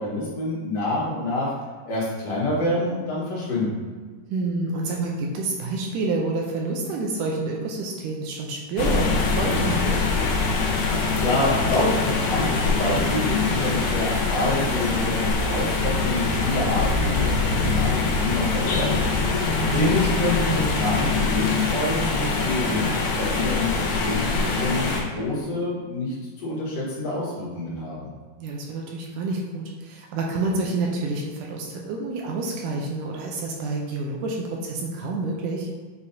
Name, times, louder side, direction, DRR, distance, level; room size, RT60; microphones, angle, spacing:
voice 1, 0.0-1.5 1.9-3.8 11.1-19.1 19.7-28.1, left 1 dB, 55° left, -7 dB, 2.2 m, -27 dB
voice 2, 4.3-10.0 19.6-20.0 28.4-35.7, right 3 dB, 80° right, -1 dB, 1.9 m, -28 dB
sound 1, 8.8-25.0, left 4 dB, 70° left, 2.1 m, -23 dB
8.3 x 4.7 x 2.7 m, 1.4 s
omnidirectional pair, 4.4 m